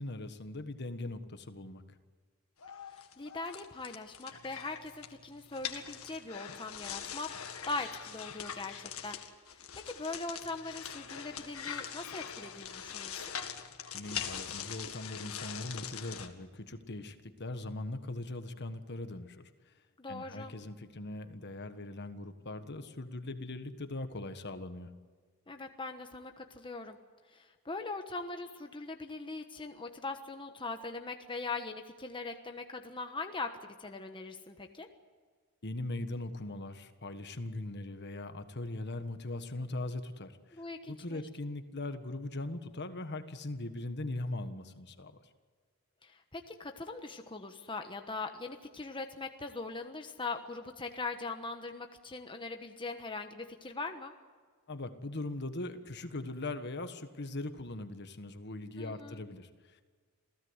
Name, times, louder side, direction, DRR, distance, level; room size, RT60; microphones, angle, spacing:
voice 1, 0.0-2.0 13.9-19.7 20.1-24.9 35.6-45.2 54.7-59.8, left 2 dB, 50° left, 9 dB, 1.5 m, -40 dB
sound 1, 2.6-16.3, left 8 dB, 75° left, 1.9 m, -43 dB
voice 2, 2.9-7.3 7.7-9.2 9.5-9.6 9.8-13.3 20.0-20.5 25.5-27.0 27.3-34.9 40.5-41.2 46.0-54.1 58.8-59.2, left 3 dB, 25° left, 5 dB, 1.2 m, -41 dB
27.5 x 16.5 x 8.1 m, 1.5 s
head